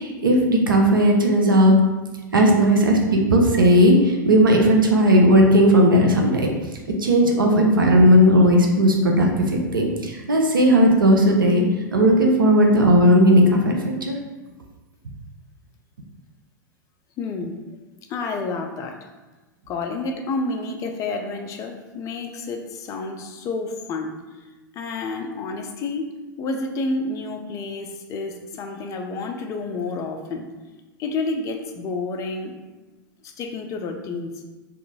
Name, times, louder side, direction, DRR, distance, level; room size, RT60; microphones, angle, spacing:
voice 1, 0.0-1.7 2.3-6.5 7.0-11.6 11.9-14.1, equal, 80° right, 1 dB, 0.5 m, -16 dB
voice 2, 17.2-17.5 18.1-19.1 19.7-24.2 24.7-26.1 26.4-30.5 31.0-32.5 33.2-34.3, left 3 dB, 30° left, 4 dB, 0.4 m, -29 dB
2.5 x 2.3 x 2.8 m, 1.2 s
figure-of-eight pair, 95°, 11 cm